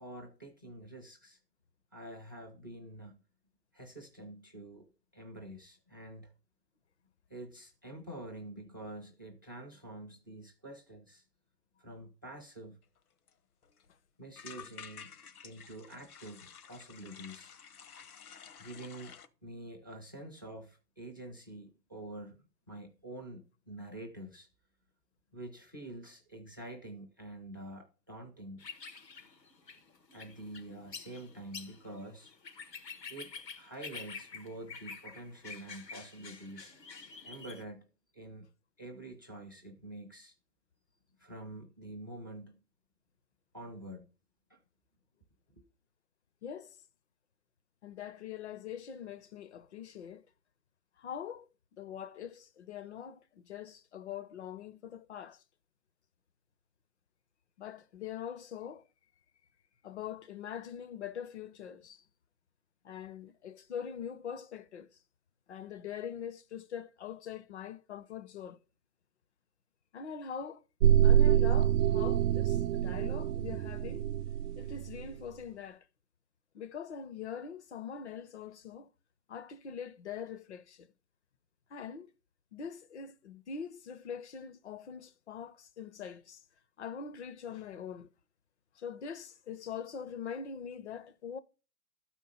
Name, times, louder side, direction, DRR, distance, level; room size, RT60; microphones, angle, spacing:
voice 1, 0.0-1.4 1.9-3.2 3.7-6.3 7.3-11.2 11.8-12.8 14.2-15.1 15.4-17.6 18.6-24.5 25.3-28.6 30.1-32.3 33.1-36.7 37.2-37.9 38.1-38.5 38.8-40.3 41.2-42.6 43.5-44.1 44.5-44.6 45.6-45.7, right 1 dB, 15° right, 0.4 m, -47 dB
sound 1, 13.0-13.1 13.3-13.4 13.6-13.9 14.4-19.3, left 7 dB, 60° left, 1.1 m, -51 dB
sound 2, 28.6-37.6, left 5 dB, 85° left, 1.5 m, -48 dB
voice 2, 46.4-46.8 47.8-50.3 51.0-51.5 51.8-55.4 57.6-58.9 59.8-62.0 62.8-65.0 65.5-68.6 69.9-70.6 71.0-74.1 74.5-75.9 76.5-78.9 79.3-80.9 81.7-82.1 82.5-86.4 86.8-88.1 88.8-91.4, left 7 dB, 45° left, 0.7 m, -43 dB
sound 3, 70.8-75.1, right 10 dB, 70° right, 0.5 m, -26 dB
12.0 x 4.5 x 5.5 m
figure-of-eight pair, 130°, 49 cm